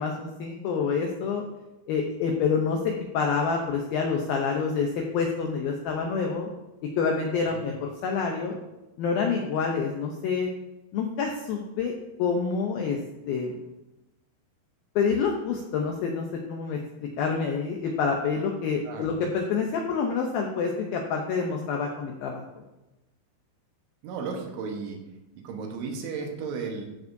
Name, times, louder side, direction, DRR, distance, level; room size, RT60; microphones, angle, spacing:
voice 1, 0.0-1.4 1.9-6.5 6.8-8.6 9.0-10.5 10.9-11.9 12.2-13.0 13.3-13.6 15.0-22.4, left 5 dB, 85° left, 1 dB, 2.1 m, -27 dB
voice 2, 24.0-25.0 25.4-26.9, right 5 dB, 90° right, 2 dB, 3.7 m, -34 dB
14.0 x 7.0 x 2.7 m, 1.0 s
omnidirectional pair, 5.2 m